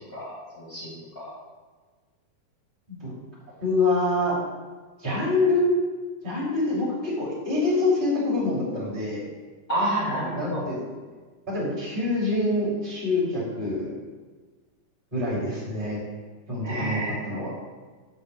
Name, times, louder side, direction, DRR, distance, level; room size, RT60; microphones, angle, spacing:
voice 1, 0.1-1.3 9.7-10.6 16.6-17.3, right 1 dB, 30° left, -7 dB, 1.7 m, -29 dB
voice 2, 3.6-4.4 5.0-5.7 6.2-9.2 10.3-10.8 11.5-13.9 15.1-16.0 16.5-17.5, left 2 dB, 15° right, -8 dB, 1.9 m, -25 dB
7.9 x 4.0 x 6.5 m, 1.4 s
omnidirectional pair, 4.7 m